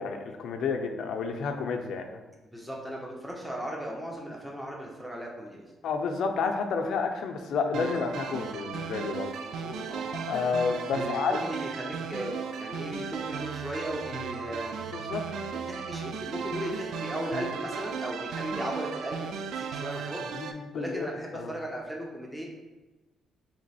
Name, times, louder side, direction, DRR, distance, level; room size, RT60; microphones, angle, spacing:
voice 1, 0.0-2.1 5.8-9.3 10.1-11.4 14.9-15.2 20.3-21.1 21.3-21.5, left 5 dB, 70° left, 5 dB, 0.5 m, -30 dB
voice 2, 2.5-5.6 9.4-10.1 10.9-14.7 15.5-19.3 19.6-22.4, equal, ahead, -2 dB, 0.7 m, -37 dB
sound 1, 7.7-20.5, right 6 dB, 80° right, 0.3 m, -36 dB
sound 2, 13.0-17.6, right 3 dB, 60° right, 0.8 m, -51 dB
3.3 x 3.0 x 4.1 m, 1.2 s
cardioid pair, 90°, 0 cm